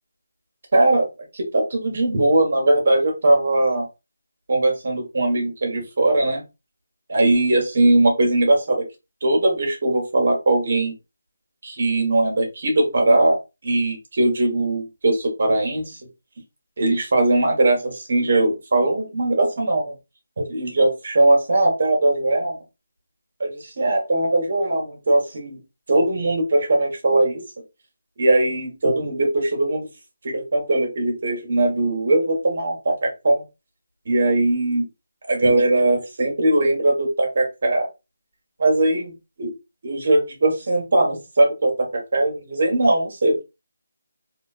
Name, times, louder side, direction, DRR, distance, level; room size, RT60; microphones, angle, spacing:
voice 1, 0.7-1.1 1.3-3.8 4.5-6.4 7.1-8.8 9.2-10.9 11.6-13.4 13.6-16.0 16.8-19.9 20.4-22.6 23.4-25.6 25.9-27.4 28.2-29.9 30.2-33.4 34.1-34.9 35.3-37.9 38.6-39.1 39.4-39.5 39.8-43.4, right 2 dB, 55° right, 1 dB, 1.2 m, -20 dB
2.9 x 2.7 x 2.4 m, 0.26 s
figure-of-eight pair, 165°, 0 cm